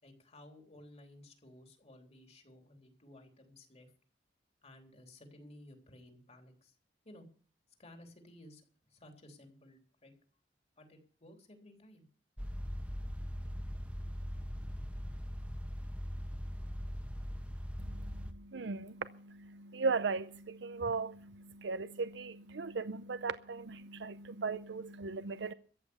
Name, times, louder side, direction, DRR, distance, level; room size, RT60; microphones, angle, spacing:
voice 1, 0.0-3.9 4.6-6.8 7.1-7.3 7.8-8.6 8.9-10.1 10.8-12.0, left 1 dB, 40° left, 3.5 m, -56 dB
sound 1, 12.4-18.3, equal, 5° right, 1.2 m, -40 dB
voice 2, 17.8-25.5, right 4 dB, 85° right, 0.6 m, -38 dB
14.5 x 9.4 x 7.0 m
head